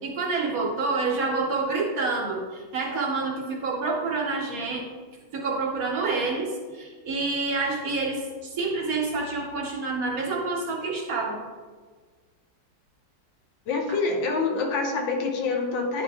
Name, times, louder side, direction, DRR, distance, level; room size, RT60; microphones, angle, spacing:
voice 1, 0.0-4.9 5.3-11.4, right 3 dB, 55° right, -1 dB, 1.2 m, -28 dB
voice 2, 13.7-16.0, left 4 dB, 85° left, 2 dB, 1.7 m, -26 dB
9.9 x 3.6 x 3.5 m, 1.5 s
omnidirectional pair, 2.0 m